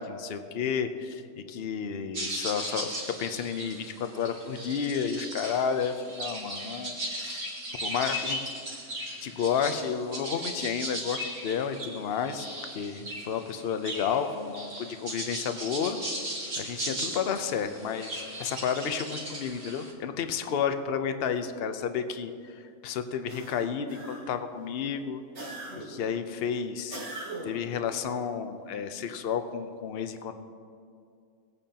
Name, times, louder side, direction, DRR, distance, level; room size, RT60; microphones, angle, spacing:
voice 1, 0.0-7.5 7.8-8.4 9.2-12.5 12.7-16.0 16.6-25.2 25.8-27.0 27.4-30.4, left 7 dB, 55° left, 8 dB, 0.7 m, -31 dB
sound 1, 2.1-19.9, right 1 dB, 55° right, 2.2 m, -37 dB
sound 2, 23.3-24.5 25.3-26.1 26.9-27.7, right 2 dB, 85° right, 2.1 m, -40 dB
18.5 x 8.8 x 2.9 m, 2.3 s
omnidirectional pair, 1.5 m